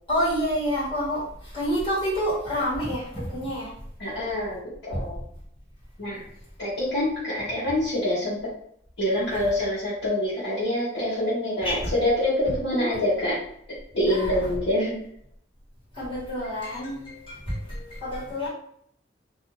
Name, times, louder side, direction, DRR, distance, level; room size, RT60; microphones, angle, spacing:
voice 1, 0.1-3.7 4.9-5.0 11.6-11.9 14.1-14.4 15.9-18.5, equal, 30° left, -8 dB, 1.3 m, -28 dB
voice 2, 4.0-5.2 6.0-6.2 6.6-8.5 9.0-13.4 13.9-15.0, left 1 dB, 75° left, -10 dB, 0.9 m, -26 dB
2.4 x 2.3 x 2.9 m, 0.68 s
head